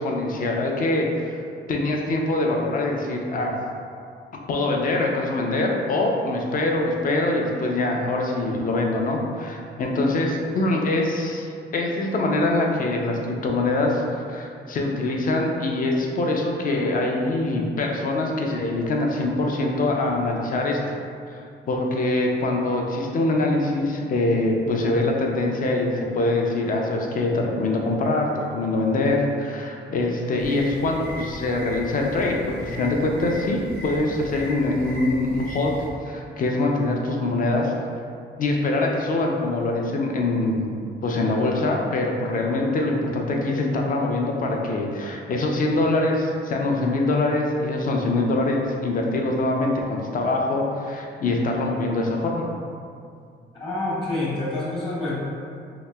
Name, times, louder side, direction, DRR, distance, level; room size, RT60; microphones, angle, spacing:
voice 1, 0.0-1.4 1.7-3.6 4.5-11.5 11.7-20.8 21.3-35.7 36.0-37.7 38.4-40.7 41.0-52.5, left 2 dB, 45° left, 0 dB, 0.5 m, -24 dB
sound 1, 30.4-35.9, equal, 70° left, 0.9 m, -37 dB
voice 2, 53.6-55.1, left 2 dB, 25° left, -8 dB, 0.9 m, -27 dB
2.9 x 2.7 x 2.2 m, 2.3 s
cardioid pair, 90°, 20 cm